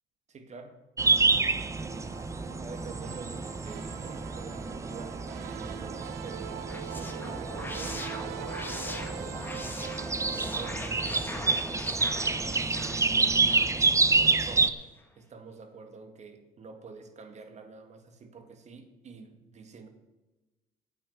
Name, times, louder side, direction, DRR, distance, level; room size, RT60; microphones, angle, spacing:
voice 1, 0.3-0.7 2.6-6.6 6.9-13.4 14.2-14.7 15.2-19.9, right 5 dB, 45° right, 7 dB, 2.0 m, -48 dB
sound 1, 1.0-14.7, right 3 dB, 15° right, 0.8 m, -28 dB
sound 2, 1.0-12.2, right 11 dB, 85° right, 0.8 m, -43 dB
sound 3, 6.5-14.5, left 2 dB, 10° left, 1.8 m, -41 dB
9.6 x 8.5 x 8.0 m, 1.1 s
cardioid pair, 110°, 17 cm